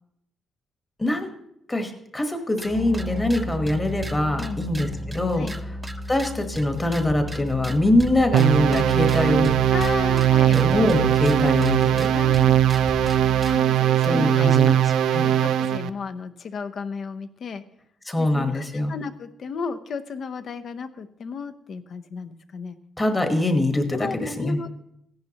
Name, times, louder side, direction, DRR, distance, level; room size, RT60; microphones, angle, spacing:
voice 1, 1.0-1.3 1.7-5.5 6.1-9.5 10.5-12.1 14.0-14.8 15.1-15.3 18.1-18.9 23.0-24.6, left 1 dB, 15° left, 6 dB, 1.2 m, -23 dB
sound 1, 2.6-13.6, equal, 10° right, 0.4 m, -33 dB
sound 2, 8.3-15.9, right 11 dB, 75° right, 0.4 m, -20 dB
voice 2, 9.7-10.6 12.1-12.6 13.5-14.6 15.2-17.6 18.2-22.8 23.9-24.7, left 5 dB, 45° left, 10 dB, 0.6 m, -34 dB
15.5 x 10.5 x 2.9 m, 0.76 s
cardioid pair, 155°, 0 cm